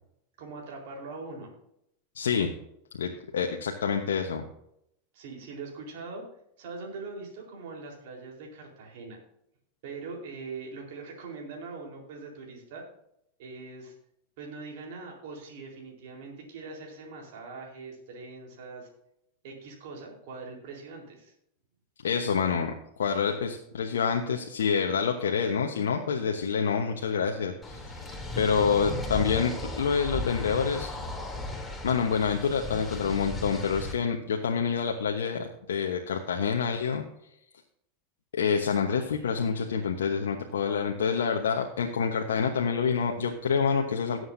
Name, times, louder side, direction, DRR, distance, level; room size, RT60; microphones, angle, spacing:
voice 1, 0.4-1.5 5.1-6.2 6.6-9.2 9.8-12.8 13.4-13.9 14.4-18.9 19.4-21.3, right 4 dB, 65° right, 0 dB, 4.0 m, -42 dB
voice 2, 2.1-2.5 3.0-4.4 22.0-28.0 28.4-30.9 31.8-37.0 38.3-44.2, left 6 dB, 80° left, 2 dB, 1.1 m, -27 dB
sound 1, 27.6-33.9, left 1 dB, 10° left, 3.1 m, -36 dB
18.0 x 7.9 x 2.7 m, 0.76 s
hypercardioid pair, 95°, 0 cm